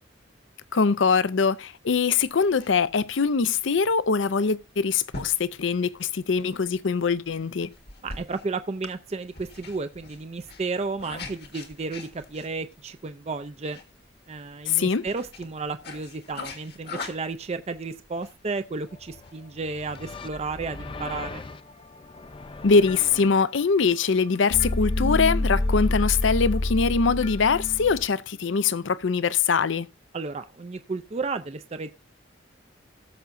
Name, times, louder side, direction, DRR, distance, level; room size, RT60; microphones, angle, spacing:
voice 1, 0.7-7.7 14.7-15.0 22.6-29.9, left 5 dB, 75° left, 0.6 m, -23 dB
sound 1, 2.1-20.0, left 3 dB, 55° left, 1.5 m, -44 dB
voice 2, 8.0-13.8 14.3-21.4 30.1-31.9, right 4 dB, 35° right, 0.4 m, -33 dB
sound 2, 19.0-19.3 19.6-23.3 24.5-28.1, left 2 dB, 25° left, 0.4 m, -29 dB
18.5 x 6.9 x 2.6 m
head